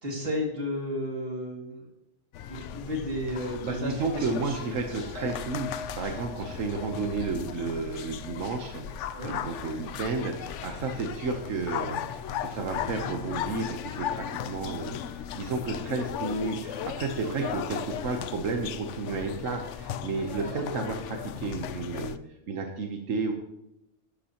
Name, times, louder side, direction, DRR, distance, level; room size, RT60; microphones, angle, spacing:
voice 1, 0.0-1.9 2.5-4.6 4.8-5.3 9.2-9.3 9.7-9.9 17.2-17.5 20.3-20.6, left 1 dB, 50° right, 0 dB, 2.7 m, -34 dB
sound 1, 2.3-22.2, left 9 dB, 75° left, 0.9 m, -37 dB
voice 2, 3.6-22.2 22.5-23.3, right 4 dB, 80° right, 3 dB, 1.3 m, -32 dB
sound 2, 5.2-11.8 12.1-12.8, left 4 dB, 5° right, 2.3 m, -47 dB
12.0 x 12.0 x 2.9 m, 0.89 s
omnidirectional pair, 1.3 m